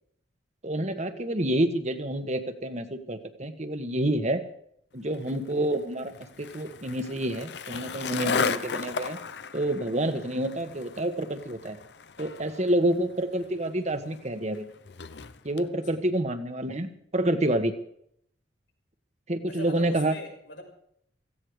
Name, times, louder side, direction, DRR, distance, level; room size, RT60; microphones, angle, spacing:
voice 1, 0.6-4.4 4.9-6.1 6.4-9.2 9.5-11.8 12.2-14.7 15.4-17.7 19.3-20.1, right 1 dB, 40° right, 8 dB, 1.4 m, -28 dB
Skateboard, 5.1-15.7, left 5 dB, 65° left, 0.7 m, -36 dB
voice 2, 15.6-16.1 19.5-20.6, left 1 dB, 85° left, 0 dB, 6.2 m, -42 dB
17.5 x 15.5 x 5.0 m, 0.69 s
head